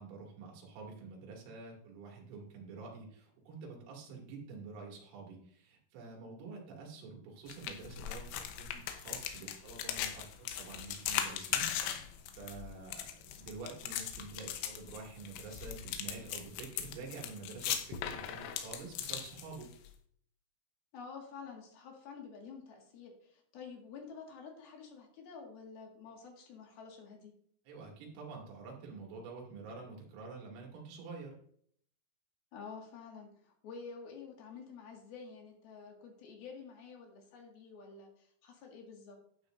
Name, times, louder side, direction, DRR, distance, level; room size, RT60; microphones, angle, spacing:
voice 1, 0.0-19.7 27.7-31.3, right 4 dB, 85° right, -1 dB, 4.9 m, -48 dB
sound 1, 7.5-19.9, left 10 dB, 85° left, 3.4 m, -39 dB
voice 2, 20.9-27.3 32.5-39.2, left 5 dB, 60° left, 1 dB, 3.3 m, -49 dB
11.5 x 9.4 x 2.6 m, 0.62 s
omnidirectional pair, 5.6 m